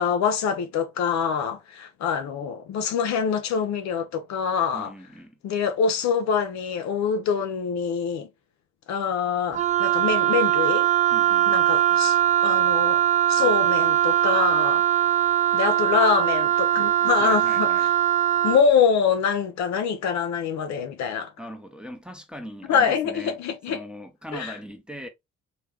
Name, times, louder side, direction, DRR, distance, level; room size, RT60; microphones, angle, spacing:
voice 1, 0.0-4.9 5.4-8.3 8.9-10.9 11.5-13.0 13.3-14.8 15.5-17.9 18.4-21.3 22.7-23.8 24.3-24.5, left 6 dB, 50° left, 0.6 m, -25 dB
voice 2, 4.7-5.4 11.1-11.5 17.2-17.9 21.4-23.4 23.7-25.1, equal, 5° right, 0.7 m, -40 dB
Wind instrument woodwind instrument, 9.5-18.6, right 11 dB, 20° right, 0.3 m, -21 dB
3.3 x 2.3 x 3.3 m
hypercardioid pair, 50°, 36 cm